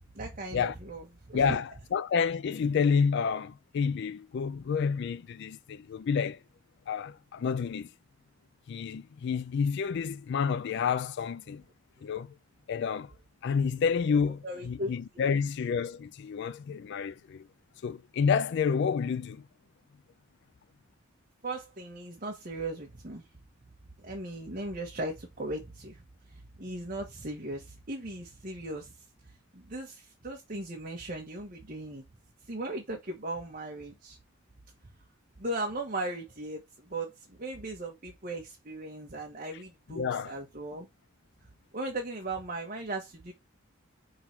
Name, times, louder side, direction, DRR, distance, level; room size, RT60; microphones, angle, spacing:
voice 1, 0.1-1.6 14.4-15.3 21.4-23.3 24.0-26.0 26.3-32.0 32.4-34.2 35.4-40.9 41.7-43.3, right 2 dB, 45° right, 1.3 m, -38 dB
voice 2, 1.3-6.4 6.9-7.9 8.7-11.6 12.0-12.3 12.7-13.1 13.4-17.5 17.8-19.4 40.0-40.3, left 6 dB, 60° left, 0.3 m, -29 dB
5.4 x 3.9 x 4.4 m
head